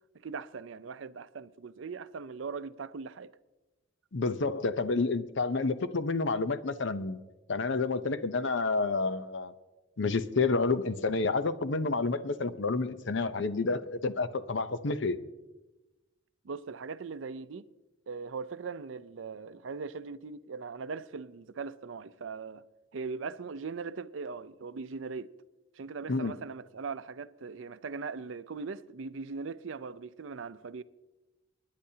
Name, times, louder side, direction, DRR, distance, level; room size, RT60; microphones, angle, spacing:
voice 1, 0.2-3.3 16.4-17.7 18.1-22.6 22.9-25.3 25.7-30.8, right 4 dB, 85° right, 0.5 m, -40 dB
voice 2, 4.1-7.2 7.5-9.5 10.0-15.2 26.1-26.4, left 3 dB, 70° left, 0.7 m, -29 dB
29.5 x 10.5 x 2.8 m
head